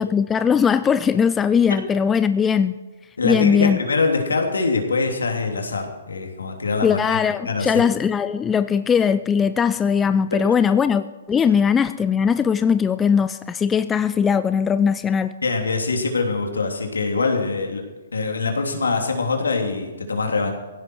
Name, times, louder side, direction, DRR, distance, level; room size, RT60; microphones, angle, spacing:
voice 1, 0.0-2.8 3.2-3.8 6.8-15.3, left 7 dB, 15° left, 12 dB, 0.5 m, -19 dB
voice 2, 3.2-7.2 7.4-7.8 10.4-10.5 15.4-17.8 18.1-20.5, left 4 dB, 80° left, 3 dB, 3.1 m, -23 dB
18.0 x 15.5 x 4.8 m, 1.2 s
figure-of-eight pair, 125°, 0 cm